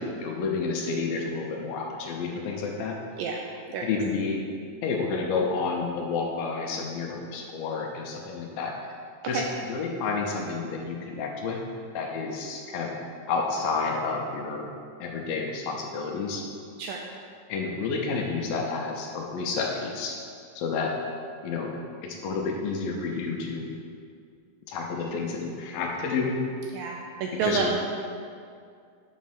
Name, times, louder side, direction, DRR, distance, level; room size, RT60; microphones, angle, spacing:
voice 1, 0.0-3.0 3.8-4.4 4.8-8.7 9.2-11.6 11.9-12.9 13.3-14.7 15.0-16.4 17.5-20.2 20.6-20.9 21.4-21.7 22.0-23.7 24.7-26.4 27.4-27.8, left 4 dB, 80° left, 0 dB, 2.3 m, -30 dB
voice 2, 26.7-27.8, right 5 dB, 80° right, 0 dB, 2.1 m, -29 dB
6.3 x 5.2 x 5.8 m, 2.2 s
omnidirectional pair, 4.5 m